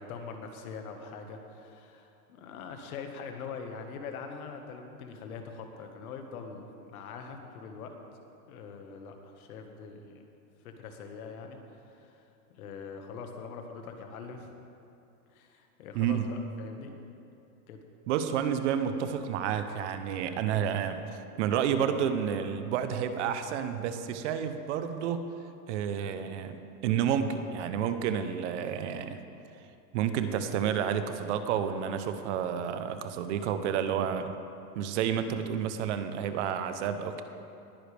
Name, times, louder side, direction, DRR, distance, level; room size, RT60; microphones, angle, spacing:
voice 1, 0.0-8.0 8.5-10.2 10.6-11.6 11.9-12.2 12.5-14.5 15.3-17.0 17.7-17.8, left 5 dB, 65° left, 4 dB, 1.7 m, -43 dB
voice 2, 15.9-16.3 18.1-21.0 21.4-25.2 25.7-29.2 29.9-34.3 34.7-37.2, right 8 dB, 50° right, 9 dB, 0.9 m, -30 dB
19.5 x 10.0 x 3.4 m, 2.7 s
supercardioid pair, 145°, 47 cm